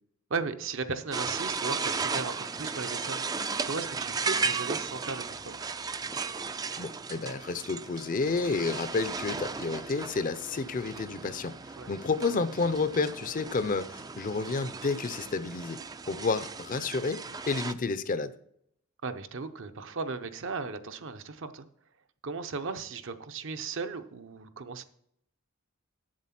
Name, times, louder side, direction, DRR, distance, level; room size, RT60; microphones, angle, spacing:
voice 1, 0.3-5.6 11.8-11.9 17.3-17.4 19.0-21.7 22.2-24.8, right 4 dB, 60° right, 9 dB, 0.7 m, -36 dB
sound 1, 1.1-17.7, right 4 dB, 15° right, 0.3 m, -35 dB
voice 2, 6.8-11.5 11.9-15.8 16.1-18.3, left 4 dB, 40° left, 13 dB, 0.5 m, -30 dB
8.3 x 7.5 x 5.8 m, 0.71 s
head